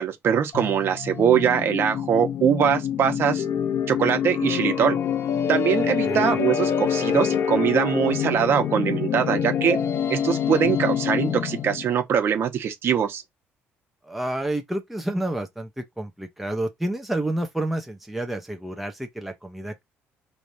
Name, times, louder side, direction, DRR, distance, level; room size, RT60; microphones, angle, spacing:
voice 1, 0.0-3.4 3.9-5.0 5.5-9.8 10.1-13.2, right 8 dB, 55° right, 1.2 m, -22 dB
sound 1, 0.5-11.9, left 8 dB, 55° left, 0.9 m, -26 dB
voice 2, 6.0-6.4 14.0-19.8, right 1 dB, 5° right, 0.9 m, -29 dB
4.7 x 3.3 x 2.8 m
cardioid pair, 120°, 5 cm